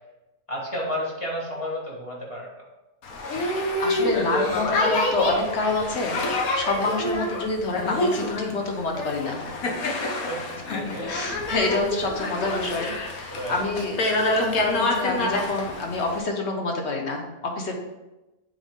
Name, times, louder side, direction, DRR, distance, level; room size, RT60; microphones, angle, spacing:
voice 1, 0.5-2.5 6.8-7.0 9.8-9.9 10.3-11.1 13.3-13.6, equal, 20° left, -4 dB, 1.4 m, -32 dB
Boat Water vehicle, 3.0-16.2, left 2 dB, 70° left, 1.3 m, -27 dB
voice 2, 3.8-6.2 6.6-9.4 10.7-10.8 11.1-17.8, left 3 dB, 50° left, 2 dB, 1.2 m, -27 dB
8.8 x 3.7 x 3.7 m, 1.0 s
omnidirectional pair, 1.6 m